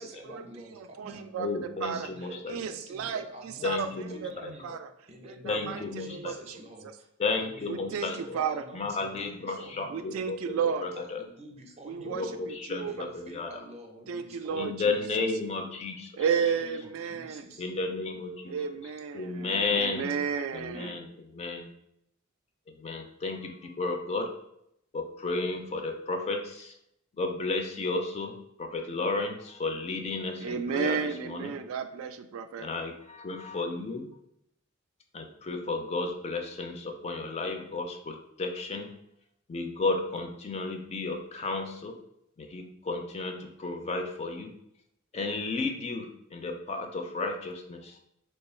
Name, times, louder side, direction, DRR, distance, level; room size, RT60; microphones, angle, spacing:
voice 1, 0.0-1.2 1.9-4.7 5.1-10.2 10.6-12.5 12.8-15.3 16.6-17.7, right 1 dB, 30° right, 2 dB, 0.6 m, -48 dB
voice 2, 0.7-2.1 2.5-4.3 4.6-4.9 5.2-6.6 7.7-8.6 9.9-10.8 11.8-12.9 14.1-14.9 16.2-17.5 18.5-21.0 30.4-32.7, right 6 dB, 80° right, 11 dB, 0.3 m, -33 dB
voice 3, 1.4-2.6 3.6-4.5 5.4-6.4 7.2-8.4 8.7-11.2 12.1-13.5 14.5-16.1 17.6-18.8 19.1-20.1 20.5-21.7 22.7-24.3 24.9-26.8 27.1-28.3 28.6-31.5 32.6-34.1 35.1-38.9 39.5-42.0 42.4-44.5 45.1-48.0, left 3 dB, 30° left, 4 dB, 0.4 m, -33 dB
3.0 x 2.3 x 4.1 m, 0.77 s
head